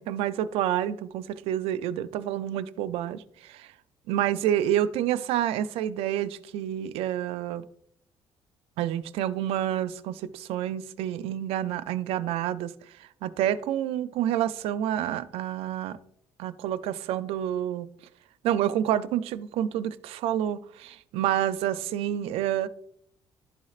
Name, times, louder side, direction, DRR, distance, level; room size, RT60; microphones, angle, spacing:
voice 1, 0.0-3.7 4.1-7.6 8.8-12.7 13.0-16.0 16.4-17.9 18.4-22.7, right 11 dB, 90° right, 0.4 m, -28 dB
11.5 x 4.2 x 2.4 m
cardioid pair, 125°, 10 cm